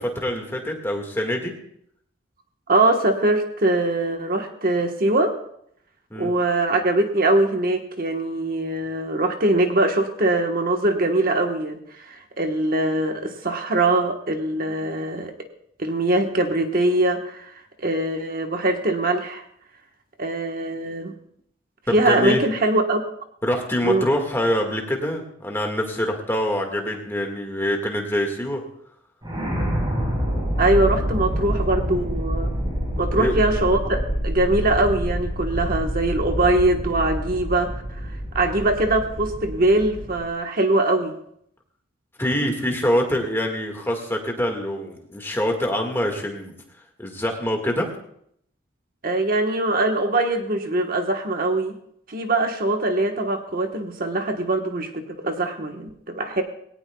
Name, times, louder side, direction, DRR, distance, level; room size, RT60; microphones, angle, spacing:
voice 1, 0.0-1.5 6.1-6.3 21.9-22.4 23.4-28.6 33.2-33.3 42.2-46.5 47.0-47.9, equal, 10° left, 2 dB, 1.7 m, -25 dB
voice 2, 2.7-5.3 6.2-15.3 15.8-19.4 20.2-21.1 21.9-23.0 23.8-24.1 30.6-32.5 33.0-41.2 49.0-51.8 52.1-56.4, right 2 dB, 45° right, 4 dB, 1.2 m, -22 dB
sound 1, 29.2-40.3, equal, 25° right, 4.5 m, -27 dB
20.5 x 18.0 x 2.3 m, 0.70 s
head